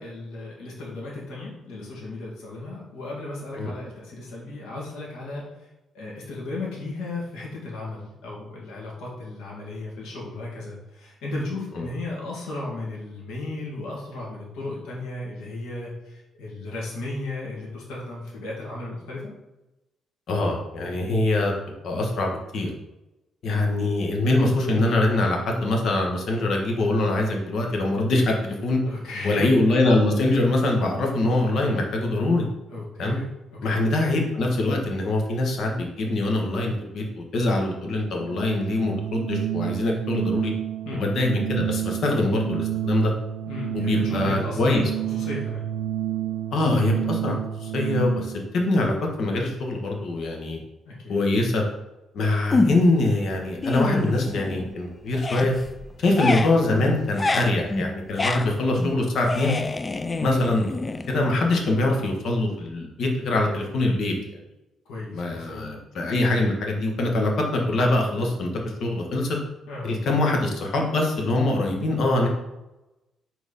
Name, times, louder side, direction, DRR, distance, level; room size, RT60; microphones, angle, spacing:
voice 1, 0.0-5.5 5.9-19.3 28.8-29.6 32.7-33.3 33.6-33.8 40.8-41.0 43.5-45.7 50.9-51.2 58.3-58.5 64.9-65.7 69.7-69.9, left 2 dB, 85° left, -4 dB, 2.2 m, -35 dB
voice 2, 20.3-21.5 21.8-22.7 23.4-28.8 29.2-32.5 33.0-33.2 33.6-40.5 40.9-43.1 43.7-44.8 46.5-50.6 51.1-51.6 52.1-55.5 56.0-59.6 60.2-64.1 65.1-68.5 68.8-69.4 69.8-72.3, left 2 dB, 65° left, 1 dB, 1.5 m, -23 dB
Organ, 38.1-48.5, right 11 dB, 90° right, 0.4 m, -30 dB
sound 1, 52.5-53.1 53.4-54.8 55.1-61.6, left 3 dB, 25° left, 0.4 m, -28 dB
4.5 x 4.4 x 5.5 m, 0.97 s
cardioid pair, 90°, 0 cm